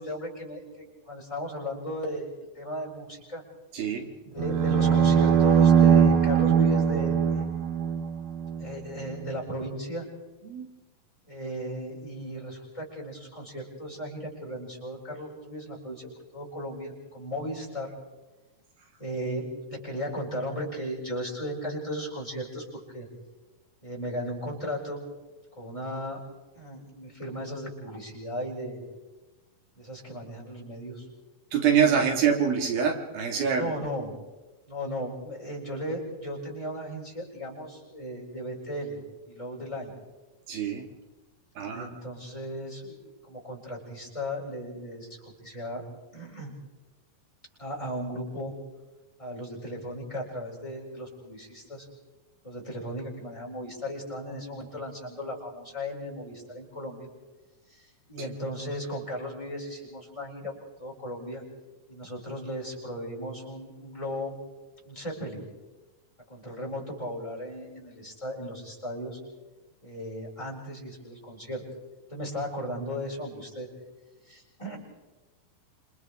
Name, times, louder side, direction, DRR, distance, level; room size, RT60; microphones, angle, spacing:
voice 1, 0.0-3.4 4.2-7.5 8.6-10.1 11.3-16.1 16.3-17.9 19.0-23.1 23.8-25.0 25.6-26.2 26.5-28.8 29.8-31.1 33.5-34.1 34.7-39.9 41.6-45.1 45.4-45.8 46.1-46.6 47.6-48.6 49.2-51.9 52.4-57.1 57.7-60.5 60.8-61.4 61.9-64.4 64.9-65.5 66.3-69.2 69.8-71.6 72.1-73.7 74.2-74.8, equal, 10° left, -4 dB, 7.0 m, -36 dB
voice 2, 3.7-4.1 10.5-10.7 31.5-33.7 40.5-40.9 41.6-41.9 58.2-58.3, right 7 dB, 80° right, 3 dB, 4.0 m, -25 dB
sound 1, 4.4-8.7, right 8 dB, 60° right, 1.9 m, -21 dB
28.5 x 28.0 x 3.7 m, 1.2 s
omnidirectional pair, 4.2 m